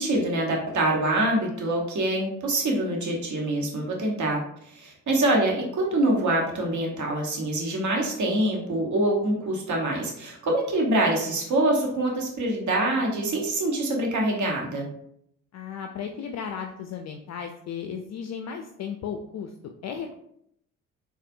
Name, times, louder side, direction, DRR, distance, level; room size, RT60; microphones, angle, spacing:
voice 1, 0.0-14.9, right 1 dB, 45° right, 0 dB, 1.2 m, -25 dB
voice 2, 15.5-20.1, left 7 dB, 45° left, 4 dB, 0.4 m, -35 dB
4.1 x 2.4 x 2.6 m, 0.72 s
hypercardioid pair, 45°, 39 cm